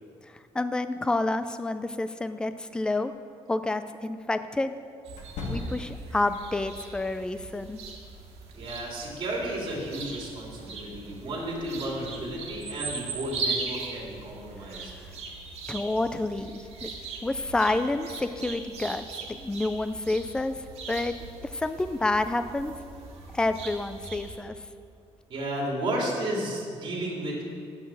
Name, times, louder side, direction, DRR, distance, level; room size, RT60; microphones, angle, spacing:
voice 1, 0.2-3.1 3.5-4.7 5.5-7.8 14.7-14.8 15.7-16.9 17.2-20.6 20.9-21.1 21.4-22.7 23.3-24.6, left 2 dB, 5° left, 11 dB, 0.4 m, -29 dB
sound 1, 2.9-3.1 5.1-6.1, left 2 dB, 75° left, 1.7 m, -36 dB
sound 2, 5.0-24.4, right 4 dB, 65° right, 2.0 m, -40 dB
voice 2, 8.5-14.9 25.3-27.4, right 1 dB, 45° right, -3 dB, 3.1 m, -33 dB
10.0 x 6.2 x 7.0 m, 2.3 s
cardioid pair, 140°, 11 cm